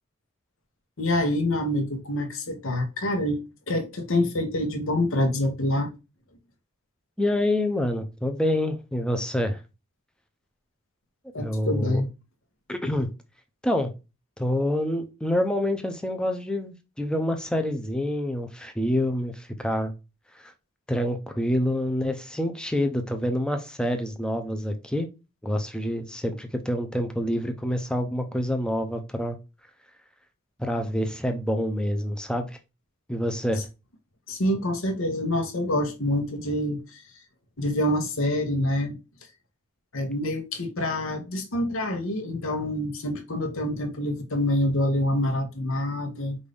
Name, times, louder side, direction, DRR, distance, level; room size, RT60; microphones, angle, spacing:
voice 1, 1.0-5.9 11.3-12.1 34.3-37.0 37.6-39.0 39.9-46.4, left 1 dB, 70° left, 1.0 m, -26 dB
voice 2, 7.2-9.6 11.4-12.0 12.7-13.1 13.6-13.9 14.4-19.9 20.4-20.5 20.9-25.1 25.4-29.4 30.6-32.6 33.1-33.6, left 1 dB, 5° left, 0.5 m, -27 dB
5.2 x 2.6 x 3.3 m
head